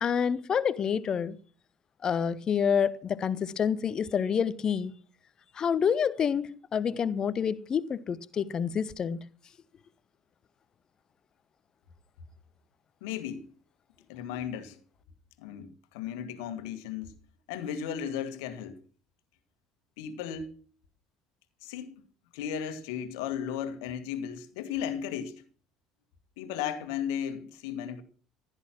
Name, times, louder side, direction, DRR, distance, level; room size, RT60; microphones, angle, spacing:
voice 1, 0.0-1.4 2.0-4.9 5.5-9.2, left 7 dB, 35° left, 0.9 m, -28 dB
voice 2, 13.0-13.5 14.1-14.8 15.4-17.1 17.5-18.8 20.0-20.6 21.6-22.0 22.3-25.4 26.4-28.0, left 8 dB, 65° left, 1.8 m, -35 dB
15.5 x 11.0 x 6.0 m
figure-of-eight pair, 60°, 2 cm